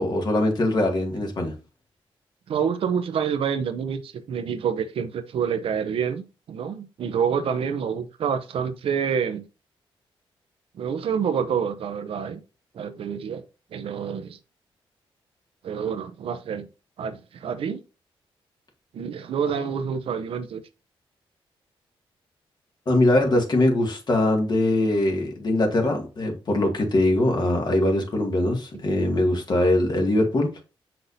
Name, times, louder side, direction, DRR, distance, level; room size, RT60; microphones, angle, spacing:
voice 1, 0.0-1.5 22.9-30.6, left 1 dB, 50° left, 2 dB, 2.1 m, -22 dB
voice 2, 2.5-9.5 10.7-12.4 12.7-13.4 13.7-14.4 15.6-16.7 17.0-17.8 18.9-20.6, right 7 dB, 75° right, 8 dB, 0.7 m, -27 dB
6.5 x 5.9 x 2.7 m, 0.31 s
cardioid pair, 90°, 10 cm